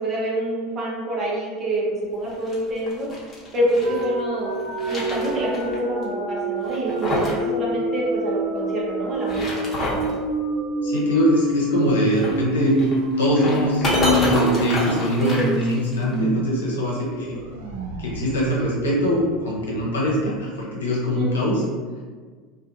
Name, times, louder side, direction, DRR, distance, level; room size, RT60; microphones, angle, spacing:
voice 1, 0.0-3.1 3.5-4.5 4.9-9.5 15.2-15.5 21.1-21.3, right 1 dB, 40° right, -4 dB, 0.9 m, -26 dB
sound 1, 2.2-4.1 4.5-5.8 6.0-6.1 6.6-7.4 7.7-7.8 9.1-10.1 12.1-16.1, left 1 dB, 30° left, 1.0 m, -28 dB
sound 2, 3.8-16.3 16.6-16.7 17.1-19.8, right 1 dB, 80° right, 0.5 m, -27 dB
voice 2, 10.8-12.8 13.2-17.4 18.0-21.6, equal, 90° left, -4 dB, 0.8 m, -23 dB
2.5 x 2.4 x 2.5 m, 1.5 s
hypercardioid pair, 85°, 0 cm